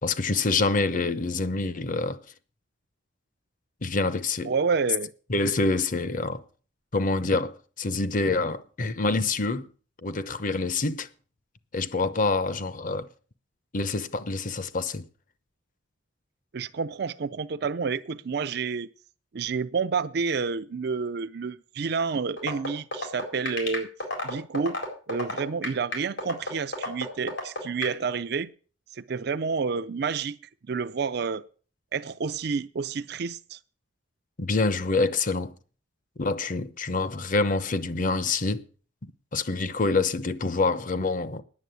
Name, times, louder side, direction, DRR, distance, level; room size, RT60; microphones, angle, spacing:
voice 1, 0.0-2.2 3.8-4.5 5.3-6.4 6.9-9.7 10.0-11.1 11.7-13.1 13.7-15.0 34.4-35.5 36.2-38.6 39.3-41.4, left 3 dB, 45° left, 0.8 m, -26 dB
voice 2, 4.4-5.1 16.5-18.9 19.3-23.9 24.2-24.8 25.1-28.5 28.9-30.4 30.7-31.4 31.9-33.6, right 5 dB, 55° right, 0.5 m, -29 dB
sound 1, 22.4-27.9, left 2 dB, 90° left, 4.3 m, -30 dB
9.7 x 7.5 x 9.2 m
head